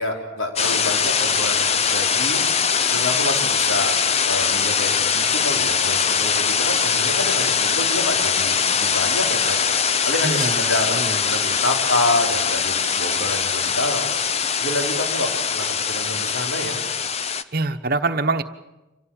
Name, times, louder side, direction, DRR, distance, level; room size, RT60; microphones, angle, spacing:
voice 1, 0.0-2.4 2.8-4.0 4.2-9.6 10.0-14.1 14.6-16.8, left 1 dB, 80° left, 2 dB, 4.3 m, -27 dB
sound 1, 0.6-17.4, left 6 dB, 30° left, 0.7 m, -22 dB
voice 2, 10.2-11.5 17.5-18.4, right 3 dB, 45° right, 8 dB, 1.1 m, -25 dB
26.0 x 16.5 x 8.9 m, 1.0 s
head